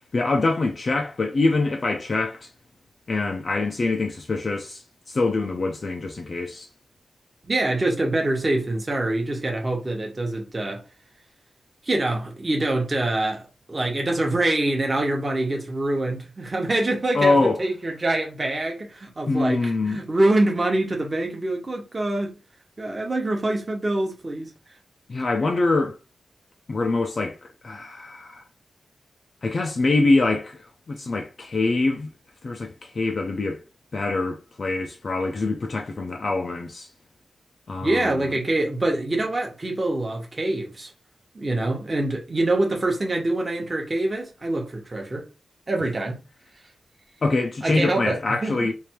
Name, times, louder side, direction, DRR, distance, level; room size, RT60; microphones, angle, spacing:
voice 1, 0.1-2.5 3.1-6.7 17.1-17.6 19.3-20.0 25.1-26.0 26.7-27.4 27.6-28.4 29.4-32.1 32.4-33.6 33.9-36.9 37.7-38.4 47.2-48.7, left 3 dB, 40° left, 0.5 m, -24 dB
voice 2, 7.4-10.8 11.8-22.4 22.8-24.5 37.8-40.9 41.3-45.3 45.7-46.2 47.6-48.7, right 2 dB, 25° right, 1.0 m, -25 dB
3.3 x 2.6 x 4.5 m
wide cardioid pair, 170°, 0 cm